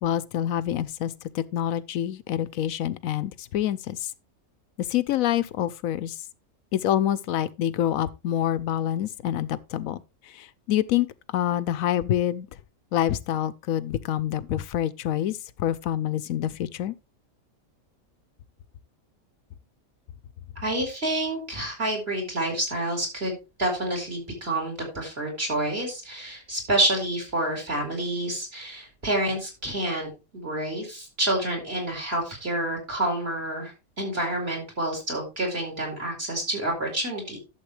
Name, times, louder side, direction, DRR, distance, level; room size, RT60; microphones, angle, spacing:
voice 1, 0.0-4.1 4.8-6.2 6.7-12.5 12.9-16.9, left 11 dB, 75° left, 1.0 m, -27 dB
voice 2, 20.6-37.4, right 1 dB, 40° right, 4.9 m, -28 dB
11.5 x 7.3 x 3.3 m
omnidirectional pair, 1.5 m